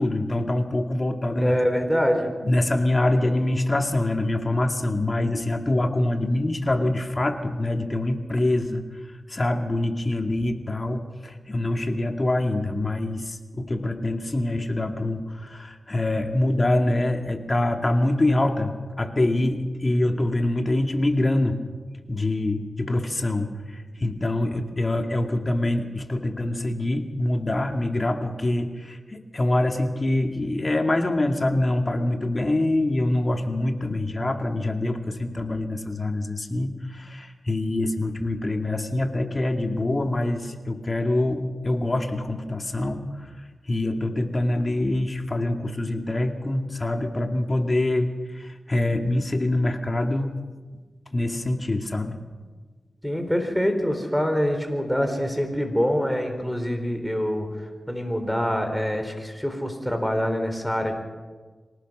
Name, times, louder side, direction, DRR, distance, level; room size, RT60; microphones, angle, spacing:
voice 1, 0.0-1.6 2.4-8.8 9.3-21.6 22.1-43.3 43.7-50.4 51.1-52.2, left 1 dB, 35° left, 5 dB, 2.4 m, -25 dB
voice 2, 1.4-2.3 53.0-57.5 57.9-61.0, equal, 5° left, 5 dB, 4.2 m, -25 dB
24.5 x 18.0 x 6.4 m, 1.4 s
cardioid pair, 55°, 0 cm